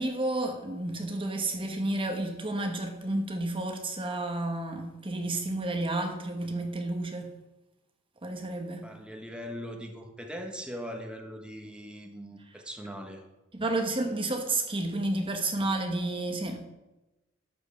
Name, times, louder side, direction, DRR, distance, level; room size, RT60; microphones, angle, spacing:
voice 1, 0.0-7.3 8.2-8.9 13.5-16.6, right 2 dB, 25° right, 1.1 m, -31 dB
voice 2, 8.8-13.2, equal, 5° right, 1.2 m, -40 dB
12.0 x 5.3 x 6.8 m
head